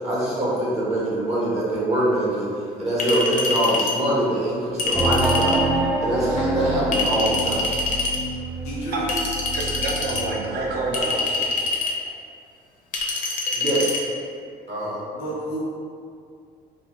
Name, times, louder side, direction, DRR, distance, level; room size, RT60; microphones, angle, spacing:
voice 1, 0.0-2.5 2.8-5.7 6.0-7.7 13.5-13.9 14.7-15.0, right 1 dB, 40° right, -7 dB, 0.8 m, -24 dB
Chink clink, 3.0-4.0 4.8-5.6 6.9-8.2 9.1-10.2 10.9-12.0 12.9-14.0, left 3 dB, 55° left, 0.5 m, -25 dB
sound 1, 4.9-11.2, right 2 dB, 10° right, 0.3 m, -27 dB
voice 2, 8.6-9.2 15.1-15.6, right 1 dB, 90° left, -6 dB, 0.9 m, -31 dB
voice 3, 9.5-11.7, right 3 dB, 70° right, -2 dB, 0.6 m, -28 dB
3.0 x 2.1 x 3.0 m, 2.3 s
cardioid pair, 110°, 17 cm